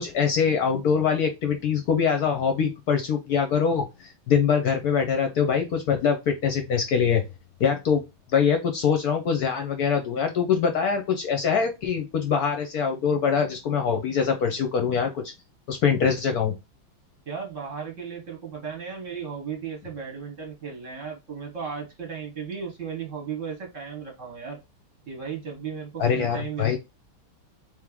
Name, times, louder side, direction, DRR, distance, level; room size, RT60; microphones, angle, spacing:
voice 1, 0.0-7.2 7.6-8.0 8.3-15.3 15.7-16.5 26.0-26.8, left 6 dB, 65° left, 5 dB, 1.0 m, -23 dB
voice 2, 17.3-24.6 25.1-26.8, right 6 dB, 50° right, 1 dB, 1.1 m, -35 dB
3.6 x 3.1 x 3.5 m, 0.24 s
omnidirectional pair, 2.2 m